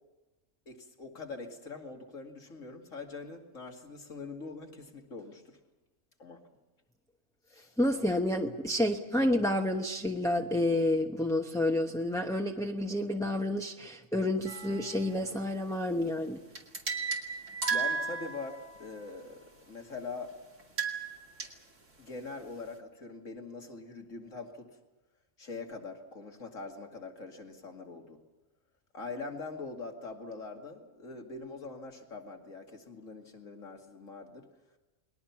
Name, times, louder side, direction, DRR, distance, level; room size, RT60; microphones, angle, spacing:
voice 1, 0.7-5.6 6.2-6.4 7.5-7.8 17.7-20.3 22.0-24.7 25.4-28.2 28.9-34.5, left 3 dB, 85° left, 3 dB, 2.7 m, -43 dB
voice 2, 7.8-16.4, left 1 dB, 5° left, 2 dB, 0.9 m, -29 dB
sound 1, 14.5-15.1 16.6-18.9 20.6-21.5, right 5 dB, 75° right, 2.9 m, -34 dB
29.5 x 21.0 x 5.9 m, 1.1 s
omnidirectional pair, 1.3 m